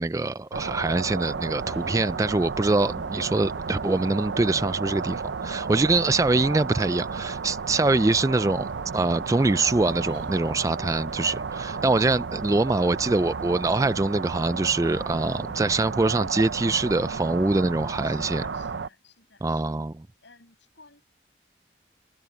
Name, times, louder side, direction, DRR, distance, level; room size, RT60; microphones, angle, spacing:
voice 1, 0.0-18.4 19.4-19.9, right 2 dB, 15° right, 0.3 m, -24 dB
sound 1, 0.5-18.9, right 5 dB, 70° right, 0.6 m, -33 dB
voice 2, 11.2-11.6 18.0-19.8 20.2-21.0, left 4 dB, 70° left, 6.4 m, -54 dB
head